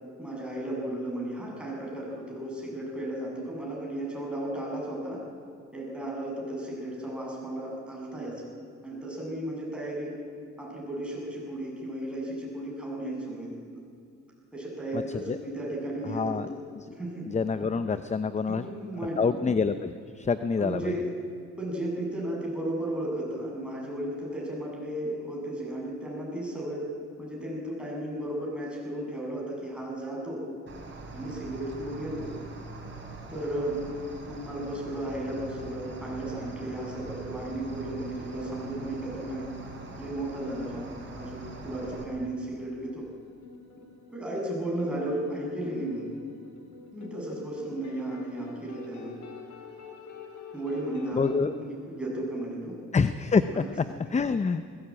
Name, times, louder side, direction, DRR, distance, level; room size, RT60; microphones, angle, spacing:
voice 1, 0.2-5.2 5.7-8.5 8.8-10.1 10.6-13.8 14.5-16.6 17.0-17.3 17.9-18.0 18.5-19.4 20.6-21.1 21.6-26.9 27.2-30.4 31.1-32.3 33.3-33.9 34.2-39.5 40.0-43.1 44.1-46.1 46.9-49.1 50.5-52.7 53.5-53.6, right 1 dB, 5° right, -3 dB, 7.5 m, -34 dB
voice 2, 14.9-15.4 16.1-16.5 16.7-16.9 17.3-18.7 19.2-20.9 51.1-51.5 52.9-53.6 54.1-54.6, left 5 dB, 25° left, 11 dB, 0.7 m, -27 dB
Cricket, 30.7-42.0, right 3 dB, 40° right, 5.2 m, -42 dB
Guitar Space, 35.8-51.3, left 5 dB, 70° left, 3.1 m, -49 dB
20.0 x 17.5 x 8.7 m, 2.3 s
cardioid pair, 90°, 30 cm